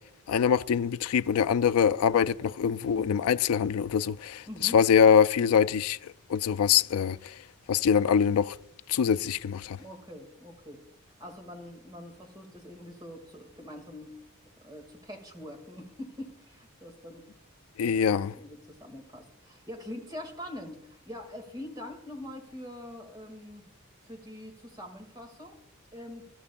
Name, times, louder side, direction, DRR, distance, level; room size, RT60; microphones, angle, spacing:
voice 1, 0.3-6.0 6.3-7.3 7.7-8.5 8.9-9.8 17.8-18.3, left 7 dB, 85° left, 0.4 m, -24 dB
voice 2, 4.5-4.8 9.8-10.8 11.2-14.1 14.6-17.2 17.8-23.7 24.0-25.6 25.9-26.2, left 1 dB, 20° right, 2.2 m, -44 dB
22.5 x 12.0 x 2.4 m
head